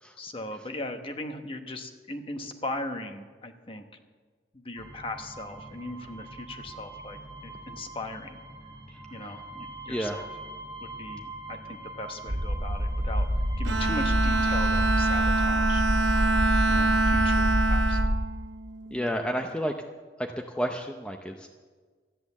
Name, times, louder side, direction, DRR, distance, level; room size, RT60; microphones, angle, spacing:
voice 1, 0.2-3.8 4.5-8.4 9.1-10.3 10.8-13.3 13.6-15.8 16.7-18.0, left 2 dB, 30° left, 5 dB, 1.1 m, -38 dB
sound 1, 4.8-18.2, right 2 dB, 20° right, 1.4 m, -44 dB
voice 2, 8.9-9.3 9.9-10.2 18.9-19.7 20.2-21.5, equal, 5° left, 3 dB, 0.6 m, -32 dB
sound 2, 12.3-18.2, equal, 40° right, 1.4 m, -27 dB
Bowed string instrument, 13.6-19.2, right 2 dB, 80° right, 0.7 m, -26 dB
14.0 x 10.5 x 7.1 m, 1.5 s
head